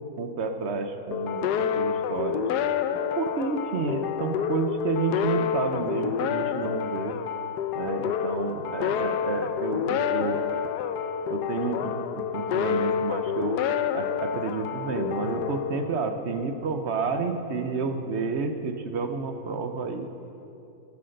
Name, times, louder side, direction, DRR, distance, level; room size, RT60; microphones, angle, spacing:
voice 1, 0.2-2.5 3.2-7.2 7.7-10.4 11.3-13.6 13.9-20.1, right 4 dB, 55° right, 7 dB, 0.8 m, -30 dB
sound 1, 1.1-16.5, left 8 dB, 85° left, 1.2 m, -28 dB
14.0 x 8.1 x 6.5 m, 2.8 s
omnidirectional pair, 1.7 m